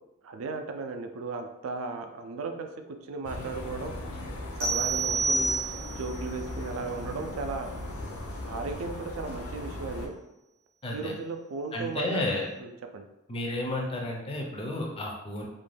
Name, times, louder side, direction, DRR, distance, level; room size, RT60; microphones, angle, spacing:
voice 1, 0.2-3.9 4.6-5.5 5.9-7.7 8.5-10.1 10.9-13.1, right 4 dB, 65° right, 6 dB, 0.3 m, -36 dB
sound 1, 3.2-10.1, left 1 dB, 85° left, 0.5 m, -38 dB
sound 2, 4.6-6.2, right 3 dB, 45° right, 0.7 m, -28 dB
voice 2, 10.8-11.1 11.7-12.5 13.3-15.5, left 2 dB, 25° left, 0 dB, 0.4 m, -32 dB
2.4 x 2.1 x 3.2 m, 0.94 s
head